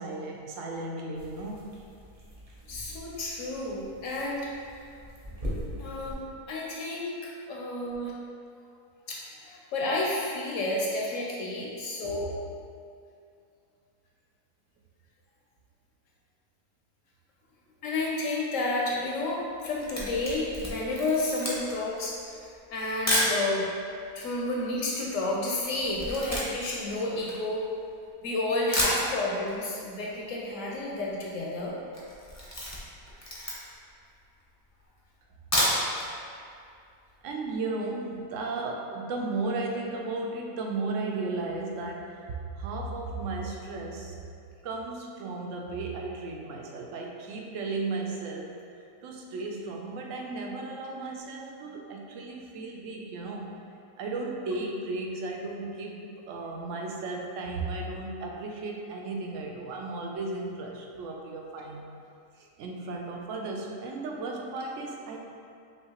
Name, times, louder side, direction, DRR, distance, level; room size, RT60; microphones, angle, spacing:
voice 1, 0.0-1.7 12.0-12.1 37.2-44.2 44.6-48.6 49.0-53.6 54.0-61.9 62.3-65.2, right 3 dB, 65° right, 1 dB, 0.8 m, -35 dB
sound 1, 1.2-6.1, equal, 35° right, 0.6 m, -41 dB
voice 2, 2.7-4.5 5.8-6.2 6.5-8.1 9.1-12.4 17.8-22.4 22.7-23.7 24.1-27.6 28.2-31.8, left 2 dB, 65° left, -3 dB, 0.9 m, -31 dB
Camera, 19.5-23.4 24.1-24.2 24.4-28.0 28.4-28.5 28.7-29.6 29.8-29.9 30.2-30.3 30.5-31.0 31.3-31.5 31.9-33.9 34.4-34.5 35.3-36.1 36.4-36.5 36.9-37.0, equal, 15° left, 0.5 m, -30 dB
5.5 x 2.9 x 2.9 m, 2.4 s
omnidirectional pair, 1.6 m